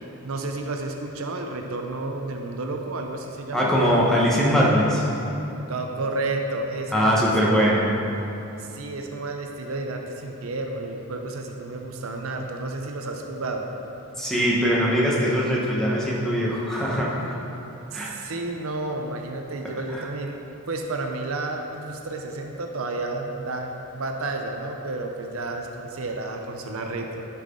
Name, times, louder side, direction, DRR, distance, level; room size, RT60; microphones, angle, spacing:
voice 1, 0.2-3.7 5.7-7.7 8.6-13.7 17.9-20.4 20.7-27.2, right 2 dB, 65° right, 3 dB, 0.6 m, -31 dB
voice 2, 3.5-5.1 6.9-7.8 14.2-17.4 17.9-18.1 19.9-20.0, equal, ahead, -6 dB, 1.2 m, -21 dB
10.5 x 5.9 x 3.8 m, 2.9 s
head